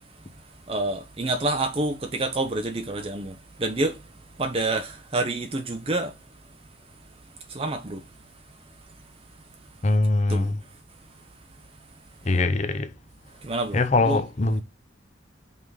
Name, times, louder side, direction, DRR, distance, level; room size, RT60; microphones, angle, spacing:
voice 1, 0.7-4.0 4.4-6.1 7.5-8.0 10.3-10.5 13.4-14.2, right 2 dB, 30° right, 0.7 m, -28 dB
voice 2, 9.8-10.6 12.2-12.9 13.7-14.6, left 2 dB, 35° left, 0.7 m, -22 dB
5.5 x 3.9 x 4.8 m
head